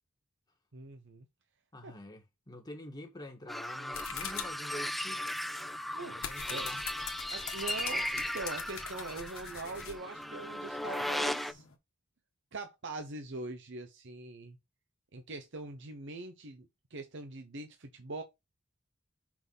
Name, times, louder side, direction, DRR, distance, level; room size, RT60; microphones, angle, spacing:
voice 1, 0.7-1.3 1.8-1.9 5.9-6.2 6.5-6.7 7.3-11.6 12.5-14.6 15.1-18.2, right 3 dB, 60° right, 0.9 m, -42 dB
voice 2, 1.7-5.3 6.1-6.8, left 1 dB, 20° left, 1.7 m, -47 dB
sound 1, 3.5-11.5, left 1 dB, ahead, 0.5 m, -37 dB
sound 2, 3.9-11.7, left 8 dB, 80° left, 1.5 m, -45 dB
5.8 x 4.1 x 5.5 m
head